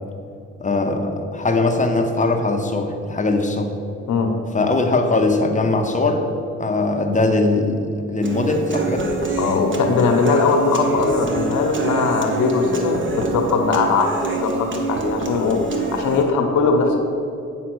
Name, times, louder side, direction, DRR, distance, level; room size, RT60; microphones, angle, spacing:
voice 1, 0.6-3.7 4.5-6.2 6.6-9.1, left 2 dB, 25° left, 4 dB, 0.9 m, -20 dB
Human voice / Acoustic guitar, 8.2-16.2, right 3 dB, 40° right, 1.1 m, -26 dB
voice 2, 9.4-17.0, left 4 dB, 75° left, 3 dB, 1.2 m, -20 dB
9.2 x 3.8 x 6.3 m, 2.5 s
cardioid pair, 90°, 30 cm